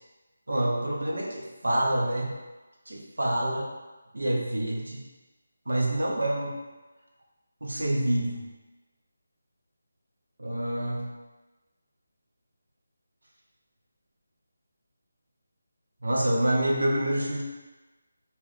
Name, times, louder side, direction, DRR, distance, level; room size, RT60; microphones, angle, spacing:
voice 1, 0.5-2.3 2.9-3.7 4.1-5.0 5.7-6.5 7.6-8.4 10.4-11.0 16.0-17.4, right 1 dB, 75° right, -2 dB, 0.8 m, -27 dB
2.9 x 2.2 x 3.7 m, 1.1 s
figure-of-eight pair, 160°, 0 cm